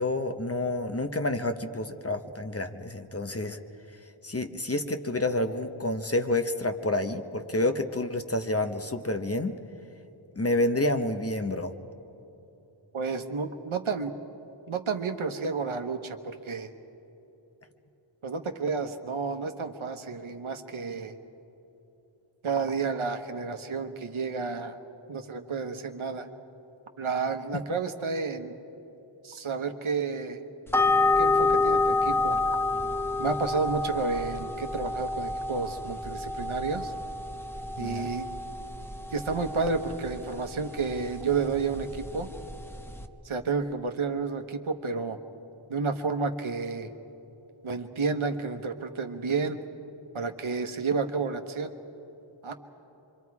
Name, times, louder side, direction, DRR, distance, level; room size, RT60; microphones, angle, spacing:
voice 1, 0.0-3.6 4.2-9.5 10.4-11.7 27.5-27.6 37.8-38.1, left 2 dB, 30° left, 7 dB, 1.0 m, -29 dB
voice 2, 12.9-14.1 14.7-16.7 18.2-21.2 22.4-24.8 25.1-26.3 27.0-28.6 29.2-30.4 31.2-32.4 33.2-36.9 37.8-38.3 39.1-42.3 43.2-45.2 45.7-46.9 47.6-49.6 50.1-51.7 52.4-52.5, right 4 dB, 75° right, 6 dB, 1.2 m, -31 dB
sound 1, 30.7-43.1, left 3 dB, 5° left, 0.9 m, -29 dB
26.0 x 24.5 x 4.8 m, 3.0 s
wide cardioid pair, 70°, 49 cm